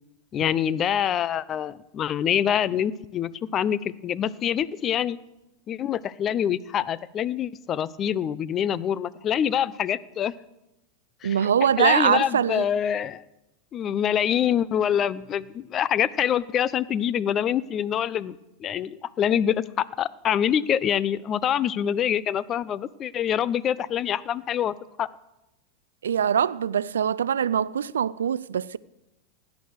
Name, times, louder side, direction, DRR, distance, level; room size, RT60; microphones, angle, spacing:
voice 1, 0.3-5.2 5.7-10.3 11.2-11.4 11.8-13.2 13.7-25.1, left 9 dB, 35° left, 0.7 m, -25 dB
voice 2, 11.2-12.7 26.0-28.8, right 8 dB, 85° right, 0.5 m, -23 dB
16.5 x 10.5 x 6.4 m
hypercardioid pair, 100°, 0 cm